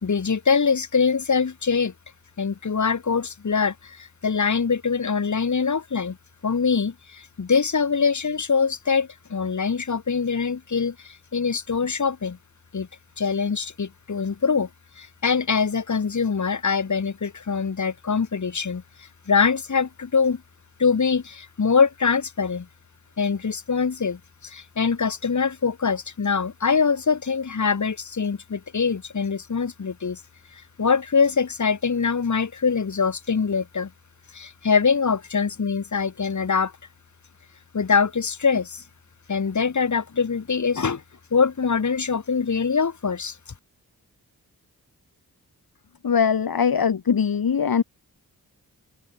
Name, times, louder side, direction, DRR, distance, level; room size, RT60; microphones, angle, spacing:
voice 1, 0.0-1.9 2.4-6.2 6.4-12.4 12.7-12.9 13.2-14.7 15.0-20.4 20.8-22.7 23.2-30.2 30.5-33.9 34.3-36.7 37.7-38.8 39.3-41.0 41.3-43.4, left 5 dB, 55° left, 2.3 m, -23 dB
voice 2, 46.0-47.8, left 7 dB, 75° left, 2.6 m, -21 dB
open air
cardioid pair, 60°, 36 cm